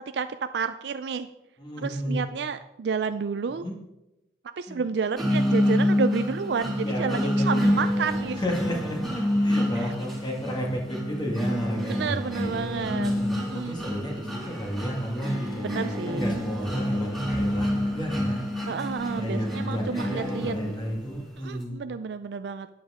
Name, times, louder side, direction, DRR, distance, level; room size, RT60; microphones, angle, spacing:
voice 1, 0.5-1.3 1.8-3.6 4.6-8.4 9.8-9.9 11.9-13.8 15.6-16.3 18.7-20.7 21.4-22.7, right 5 dB, 75° right, 10 dB, 0.4 m, -30 dB
voice 2, 1.6-2.2 3.5-3.7 4.7-4.8 6.8-7.7 8.3-12.5 13.1-18.4 19.1-21.8, equal, 25° left, -1 dB, 1.8 m, -32 dB
sound 1, 5.2-21.1, left 1 dB, ahead, 2.4 m, -28 dB
12.0 x 9.5 x 3.6 m, 0.92 s
head